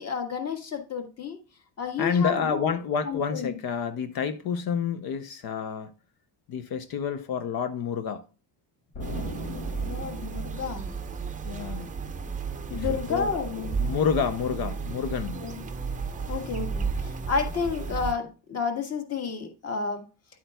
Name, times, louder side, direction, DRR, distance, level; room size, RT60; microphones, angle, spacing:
voice 1, 0.0-1.4 1.8-2.7 3.1-3.5 9.8-10.9 12.7-13.9 15.4-15.6 16.3-20.0, left 5 dB, 30° left, 1.6 m, -31 dB
voice 2, 2.0-5.9 6.5-8.2 11.4-11.9 12.7-13.4 13.8-15.4, left 6 dB, 45° left, 0.7 m, -29 dB
Explosion, 8.9-11.6, left 2 dB, 65° left, 2.4 m, -40 dB
sound 1, 9.0-18.1, right 5 dB, 15° right, 0.7 m, -33 dB
10.5 x 8.4 x 2.2 m
cardioid pair, 145°, 49 cm